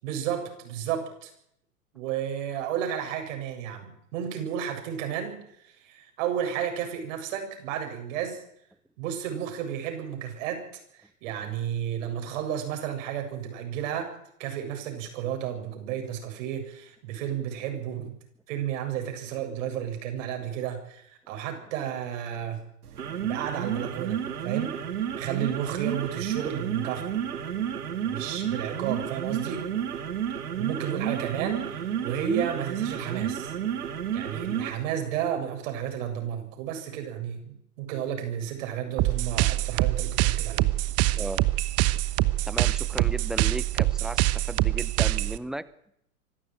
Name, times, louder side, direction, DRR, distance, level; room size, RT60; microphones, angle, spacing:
voice 1, 0.0-1.3 1.9-8.4 9.0-10.7 10.9-14.1 14.4-18.2 18.5-22.6 23.2-24.8 25.2-27.2 28.0-29.7 30.6-33.5 34.1-40.7, right 9 dB, 55° right, 4 dB, 7.7 m, -32 dB
sound 1, 22.8-34.8, right 9 dB, 85° right, 2.5 m, -31 dB
sound 2, 39.0-45.4, right 17 dB, 35° right, 1.1 m, -25 dB
voice 2, 41.1-41.5 42.5-45.6, right 1 dB, ahead, 16 dB, 0.8 m, -35 dB
25.0 x 13.5 x 9.2 m, 0.74 s
hypercardioid pair, 115°, 44 cm